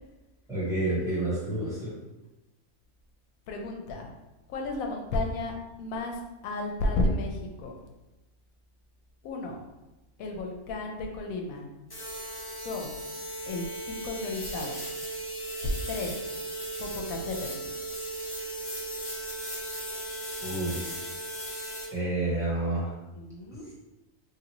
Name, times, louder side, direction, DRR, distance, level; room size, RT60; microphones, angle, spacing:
voice 1, 0.5-1.9 20.4-20.9 21.9-22.9, right 2 dB, ahead, -10 dB, 1.3 m, -29 dB
voice 2, 3.5-4.1 4.5-5.5 5.8-7.8 9.2-9.6 10.2-11.7 12.6-13.1 13.5-14.8 15.9-16.2 16.8-17.7 23.1-23.7, left 2 dB, 85° left, 2 dB, 1.0 m, -33 dB
sound 1, 11.9-21.9, right 1 dB, 25° left, 0.5 m, -37 dB
3.2 x 2.5 x 2.9 m, 1.0 s
omnidirectional pair, 1.4 m